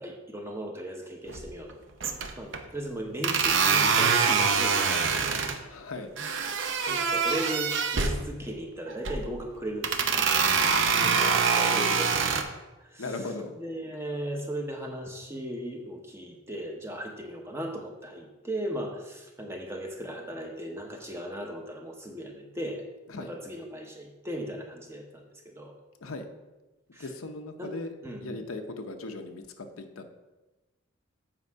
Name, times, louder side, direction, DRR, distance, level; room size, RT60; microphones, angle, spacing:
voice 1, 0.0-5.4 6.9-10.3 11.0-12.4 12.8-13.2 13.6-22.8 23.2-25.8 26.9-27.1 27.6-27.7 28.0-28.5, right 1 dB, 10° right, 2 dB, 0.9 m, -37 dB
sound 1, 1.3-1.7 2.0-2.6 3.2-5.6 6.2-8.2 8.9-9.3 9.8-12.4, right 5 dB, 60° right, 0.7 m, -25 dB
voice 2, 5.6-6.1 10.7-11.2 13.0-13.6 23.1-23.3 26.0-26.3 27.0-27.9 28.2-30.1, left 2 dB, 85° left, 6 dB, 0.8 m, -38 dB
7.9 x 5.2 x 4.7 m, 1.1 s
head